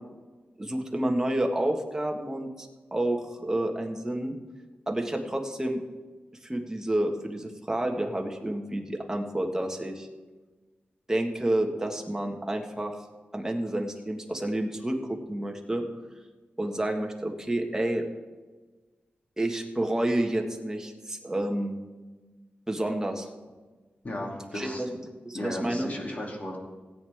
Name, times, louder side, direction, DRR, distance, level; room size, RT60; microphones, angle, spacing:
voice 1, 0.6-4.4 4.9-5.8 6.4-10.1 11.1-13.0 13.3-15.8 16.6-18.0 19.4-21.8 22.7-23.3 24.5-24.9 25.2-25.9, right 1 dB, 15° right, 2 dB, 1.6 m, -29 dB
voice 2, 24.0-24.8 25.3-26.6, left 1 dB, 40° left, -1 dB, 2.8 m, -35 dB
17.5 x 9.0 x 3.6 m, 1.3 s
wide cardioid pair, 100°, 4 cm